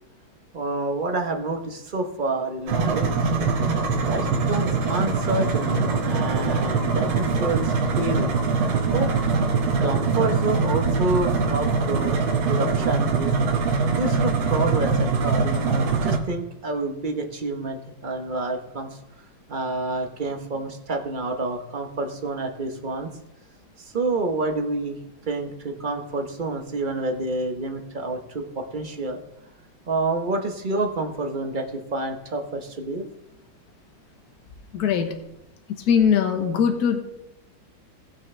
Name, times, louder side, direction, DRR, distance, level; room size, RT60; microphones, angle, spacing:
voice 1, 0.5-3.4 4.0-8.3 8.8-9.1 9.8-13.3 13.9-18.9 19.5-23.1 23.8-25.0 25.3-29.2 29.9-33.1, right 2 dB, 35° right, 4 dB, 0.8 m, -28 dB
sound 1, 2.7-16.2, right 4 dB, 75° right, 2.1 m, -23 dB
voice 2, 34.7-35.1 35.9-37.0, left 7 dB, 55° left, 5 dB, 1.5 m, -20 dB
18.5 x 6.2 x 3.3 m, 0.87 s
omnidirectional pair, 2.2 m